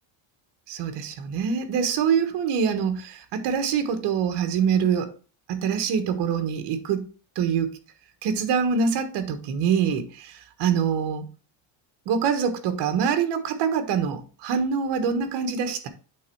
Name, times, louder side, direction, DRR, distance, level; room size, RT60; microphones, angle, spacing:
voice 1, 0.7-5.1 5.5-7.0 7.3-7.8 8.2-11.2 12.1-15.9, right 7 dB, 60° right, 1.3 m, -25 dB
8.4 x 3.6 x 4.5 m
cardioid pair, 160°, 46 cm